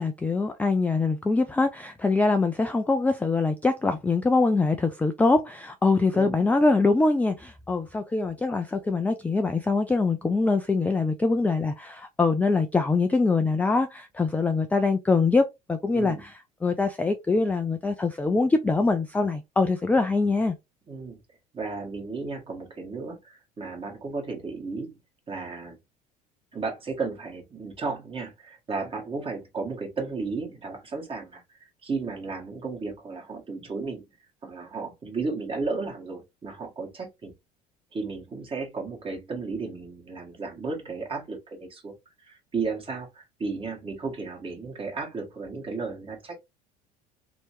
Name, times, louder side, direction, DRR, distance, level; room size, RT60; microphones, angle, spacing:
voice 1, 0.0-16.3 16.6-20.5, left 3 dB, 10° left, 0.3 m, -23 dB
voice 2, 6.1-6.4 15.9-16.2 20.9-21.2 21.5-25.0 25.3-25.8 26.5-34.0 34.4-37.3 37.9-41.9 42.2-46.4, right 4 dB, 25° right, 1.4 m, -34 dB
3.0 x 2.9 x 3.0 m
figure-of-eight pair, 65°, 20 cm